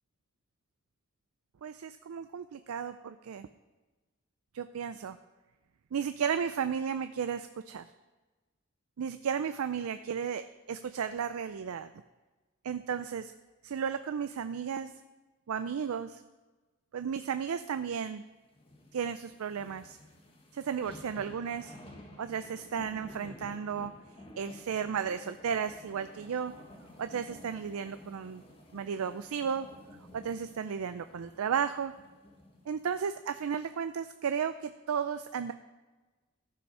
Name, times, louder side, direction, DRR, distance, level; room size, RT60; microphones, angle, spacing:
voice 1, 1.6-3.5 4.5-5.2 5.9-7.8 9.0-11.9 12.6-13.3 13.6-14.9 15.5-16.2 16.9-18.2 18.9-20.0 20.5-21.7 22.2-23.9 24.4-26.5 27.0-28.4 28.7-29.7 30.1-31.9 32.7-35.5, right 7 dB, 85° right, 11 dB, 0.4 m, -34 dB
sound 1, 18.5-33.0 33.4-33.5, left 1 dB, 25° left, 1.3 m, -52 dB
14.5 x 5.6 x 5.5 m, 1.2 s
head